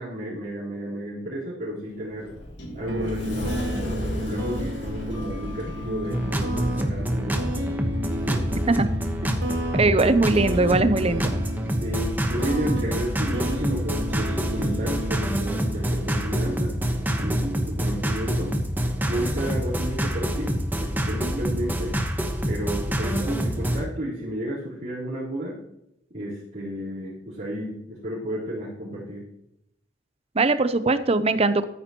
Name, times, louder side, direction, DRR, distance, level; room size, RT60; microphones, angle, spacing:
voice 1, 0.0-2.3 2.7-7.5 8.3-8.5 11.8-16.7 17.1-18.6 19.1-22.0 22.4-25.6 26.1-29.2, right 1 dB, 55° right, -11 dB, 4.0 m, -32 dB
Sliding door, 1.9-6.7, equal, 75° left, 2.9 m, -34 dB
sound 1, 2.9-17.9, equal, 70° right, 1.1 m, -33 dB
sound 2, 6.1-23.8, equal, 10° right, 1.2 m, -26 dB
voice 2, 9.7-11.3 17.2-17.3 30.3-31.7, right 3 dB, 35° right, 12 dB, 0.6 m, -21 dB
13.5 x 9.5 x 3.0 m, 0.81 s
head